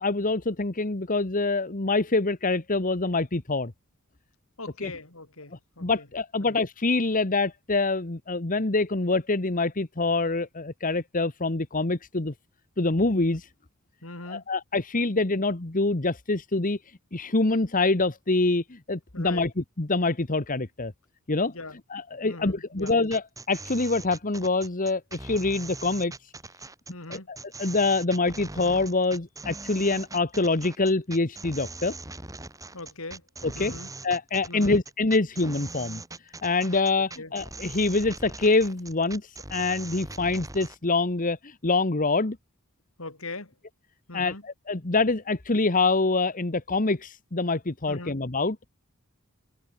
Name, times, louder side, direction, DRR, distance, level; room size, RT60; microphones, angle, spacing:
voice 1, 0.0-3.7 4.8-4.9 5.8-12.3 12.8-13.5 14.3-16.8 17.1-20.9 21.3-21.5 21.9-26.1 27.1-31.9 33.4-33.7 34.0-36.0 36.4-42.4 44.1-48.6, left 3 dB, 40° left, 1.4 m, -25 dB
voice 2, 4.6-6.1 6.4-6.6 14.0-14.4 19.1-19.5 21.5-21.8 22.2-23.0 26.9-27.3 32.7-33.3 33.5-33.9 34.5-34.8 37.0-37.3 43.0-43.5 44.1-44.4 47.9-48.2, left 2 dB, 70° left, 5.1 m, -40 dB
sound 1, 22.8-40.8, right 3 dB, 15° right, 2.5 m, -41 dB
open air
head